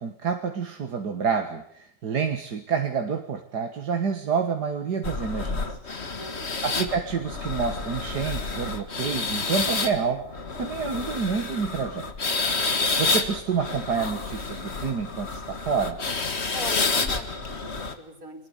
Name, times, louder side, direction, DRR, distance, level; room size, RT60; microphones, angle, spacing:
voice 1, 0.0-5.8 6.6-10.2 10.6-12.1 12.8-16.0, right 6 dB, 70° right, 5 dB, 2.2 m, -28 dB
sound 1, 5.0-17.9, left 4 dB, 40° left, 2.1 m, -29 dB
voice 2, 6.2-6.9 16.5-18.5, right 1 dB, 55° right, 5 dB, 4.4 m, -41 dB
23.0 x 20.0 x 9.7 m, 0.65 s
omnidirectional pair, 1.8 m